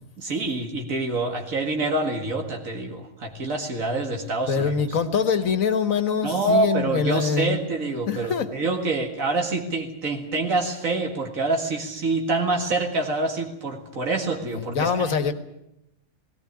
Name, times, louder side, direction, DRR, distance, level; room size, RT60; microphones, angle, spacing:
voice 1, 0.2-4.8 6.2-15.1, right 2 dB, 90° right, 2 dB, 2.4 m, -26 dB
voice 2, 4.5-7.7 8.1-8.5 14.5-15.3, left 6 dB, 85° left, 11 dB, 1.8 m, -24 dB
18.0 x 18.0 x 9.7 m, 0.84 s
omnidirectional pair, 1.4 m